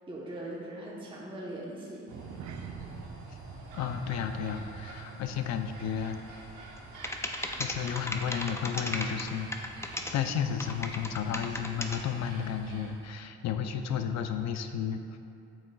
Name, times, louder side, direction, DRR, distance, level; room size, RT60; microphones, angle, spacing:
voice 1, 0.1-2.6, right 1 dB, 15° right, -5 dB, 1.0 m, -41 dB
sound 1, 2.1-6.7 7.0-7.3 7.7-7.8, right 8 dB, 60° right, 0.5 m, -50 dB
sound 2, 2.1-13.1, right 2 dB, 85° right, 1.1 m, -46 dB
voice 2, 3.7-6.2 7.6-9.7 10.1-15.2, left 8 dB, 65° left, 7 dB, 0.5 m, -33 dB
sound 3, 6.8-6.9 7.0-10.1 10.6-12.0, left 2 dB, 10° left, 0.4 m, -35 dB
8.5 x 6.4 x 2.3 m, 2.6 s
cardioid pair, 90°, 30 cm